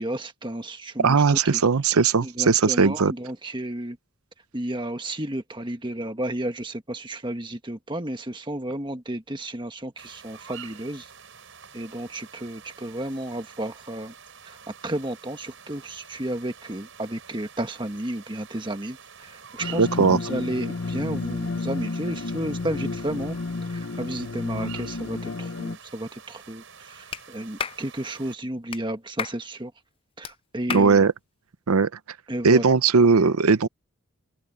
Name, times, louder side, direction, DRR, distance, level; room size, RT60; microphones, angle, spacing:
voice 1, 0.0-1.2 1.5-1.6 2.2-4.0 4.5-11.1 11.7-14.1 14.4-14.6 14.8-23.4 23.7-29.7 30.2-31.1 32.3-32.6, right 1 dB, 20° right, 1.4 m, -32 dB
voice 2, 1.0-3.1 19.8-20.2 30.7-31.1 31.7-31.9 32.4-33.7, right 5 dB, 85° right, 0.7 m, -18 dB
sound 1, 10.0-28.4, right 7 dB, 60° right, 7.9 m, -47 dB
sound 2, 19.6-25.8, left 3 dB, 65° left, 0.7 m, -31 dB
Clapping, 27.1-27.2 27.6-27.8 28.7-28.8 29.2-29.4 30.2-30.3 30.7-30.9, left 7 dB, 25° left, 0.3 m, -31 dB
head